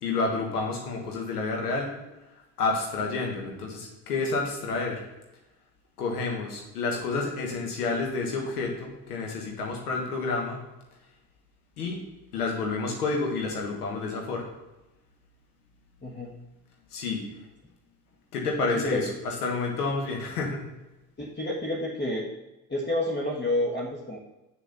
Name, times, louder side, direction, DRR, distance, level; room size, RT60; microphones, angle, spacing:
voice 1, 0.0-1.9 2.6-5.0 6.0-10.6 11.8-12.0 12.3-14.4 16.9-17.3 18.3-20.6, left 3 dB, 85° left, 0 dB, 1.5 m, -29 dB
voice 2, 16.0-16.3 18.7-19.0 21.2-22.3 22.7-24.2, left 1 dB, 25° left, -2 dB, 1.5 m, -29 dB
7.5 x 6.8 x 4.0 m, 1.0 s
hypercardioid pair, 50°, 44 cm